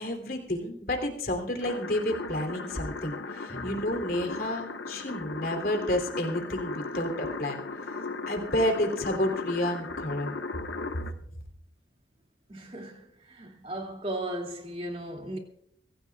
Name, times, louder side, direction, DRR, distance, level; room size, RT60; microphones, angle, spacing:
voice 1, 0.0-8.0 8.3-10.3, left 1 dB, 55° left, 3.2 m, -30 dB
sound 1, 1.6-11.1, left 3 dB, 85° left, 1.3 m, -37 dB
voice 2, 12.5-15.4, right 1 dB, 30° right, 2.5 m, -36 dB
24.5 x 15.0 x 2.4 m
head